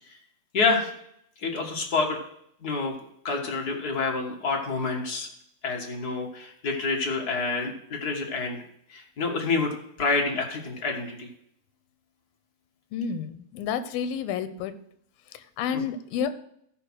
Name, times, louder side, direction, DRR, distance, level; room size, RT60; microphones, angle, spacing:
voice 1, 0.5-0.9 1.4-2.2 2.6-2.9 3.2-5.3 5.6-8.6 8.9-11.3 15.7-15.8, left 4 dB, 50° left, 1 dB, 1.1 m, -28 dB
voice 2, 12.9-14.7 15.3-16.3, left 7 dB, 90° left, 12 dB, 2.6 m, -30 dB
14.0 x 5.1 x 6.2 m, 0.71 s
omnidirectional pair, 4.1 m